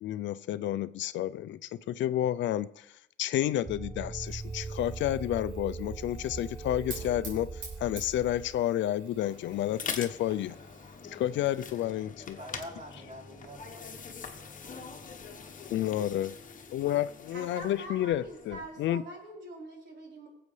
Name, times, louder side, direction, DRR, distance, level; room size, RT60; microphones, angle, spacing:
voice 1, 0.0-2.9 3.2-10.6 11.1-12.4 15.7-16.3 16.7-19.0, left 12 dB, 70° left, 15 dB, 0.4 m, -30 dB
sound 1, 3.7-8.6, right 4 dB, 15° right, 0.4 m, -40 dB
Fire, 4.2-11.7, right 3 dB, 85° right, 4.6 m, -50 dB
sound 2, 9.0-18.9, left 5 dB, 40° left, 1.1 m, -44 dB
voice 2, 12.4-14.9, equal, 40° right, -1 dB, 3.6 m, -47 dB
voice 3, 17.3-20.3, right 1 dB, 60° right, -2 dB, 3.8 m, -44 dB
19.5 x 7.9 x 3.3 m, 0.80 s
cardioid pair, 90°, 20 cm